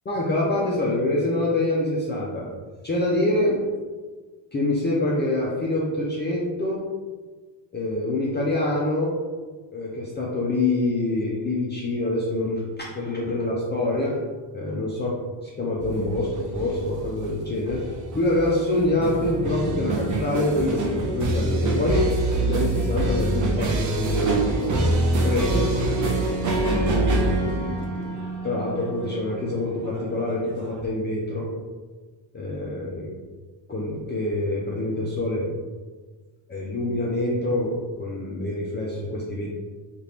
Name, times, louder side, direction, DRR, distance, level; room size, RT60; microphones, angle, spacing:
voice 1, 0.1-2.5 2.8-3.6 4.5-6.8 7.7-9.2 9.7-14.2 14.5-22.1 22.4-25.7 26.9-31.5 32.3-33.1 33.7-35.5 36.5-37.7 38.0-39.5, left 2 dB, 25° left, -5 dB, 0.5 m, -26 dB
sound 1, 15.8-30.9, right 2 dB, 40° right, 0.5 m, -26 dB
2.8 x 2.5 x 3.4 m, 1.3 s
cardioid pair, 100°, 47 cm